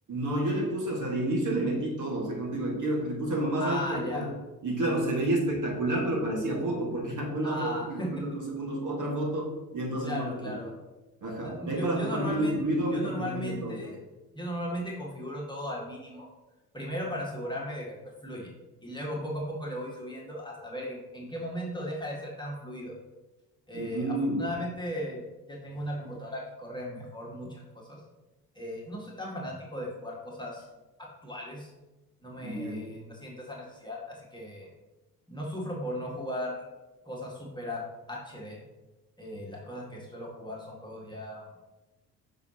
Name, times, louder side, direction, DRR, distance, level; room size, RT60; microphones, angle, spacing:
voice 1, 0.1-4.3 4.6-10.6 11.2-13.8 23.7-24.5 32.4-32.9, right 1 dB, 40° right, -1 dB, 1.9 m, -30 dB
voice 2, 3.6-4.3 7.4-8.3 10.0-10.7 11.4-12.6 12.9-14.0 14.3-16.3 16.7-18.0 18.2-18.5 18.8-23.0 23.7-25.2 25.5-27.6 27.9-28.0 28.6-30.7 31.0-31.7 32.2-34.7 35.3-36.6 37.1-37.8 38.1-38.6 39.2-41.6, equal, 10° left, -3 dB, 1.8 m, -37 dB
6.9 x 5.4 x 2.9 m, 1.1 s
hypercardioid pair, 55°, 46 cm